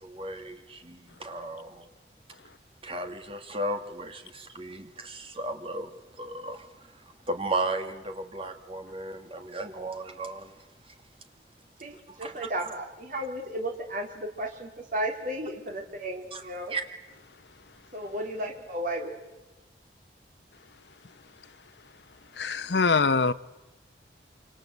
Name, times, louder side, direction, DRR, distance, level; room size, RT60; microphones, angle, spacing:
voice 1, 0.0-1.9 2.8-5.9 6.2-6.6 7.3-10.5 12.2-12.3 16.3-16.4 16.7-16.8, right 2 dB, 30° right, 2.2 m, -35 dB
voice 2, 11.8-16.7 17.9-19.1, right 1 dB, 45° right, 3.6 m, -34 dB
voice 3, 22.4-23.3, left 4 dB, 70° left, 0.9 m, -23 dB
27.5 x 25.5 x 8.1 m
head